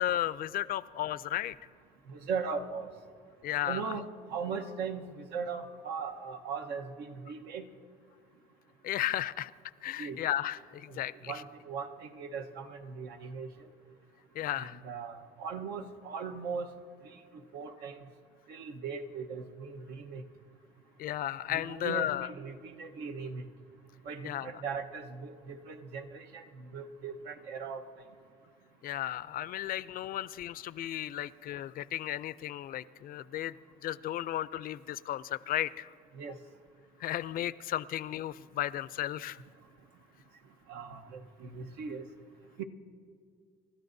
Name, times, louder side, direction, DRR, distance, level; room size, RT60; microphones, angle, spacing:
voice 1, 0.0-1.5 3.4-3.9 8.8-9.5 9.8-11.3 14.3-14.8 21.0-22.3 24.2-24.5 28.8-33.5 33.8-35.9 37.0-39.4, left 12 dB, 60° left, 17 dB, 0.4 m, -34 dB
voice 2, 2.1-2.9 3.6-7.7 10.0-10.2 10.9-11.0 11.3-13.7 14.6-16.7 17.5-18.0 18.5-20.2 21.5-23.4 24.0-27.8 36.1-36.4 40.7-42.0 42.6-42.7, right 5 dB, 90° right, 5 dB, 1.1 m, -39 dB
29.0 x 13.0 x 2.7 m, 2.1 s
cardioid pair, 110°, 17 cm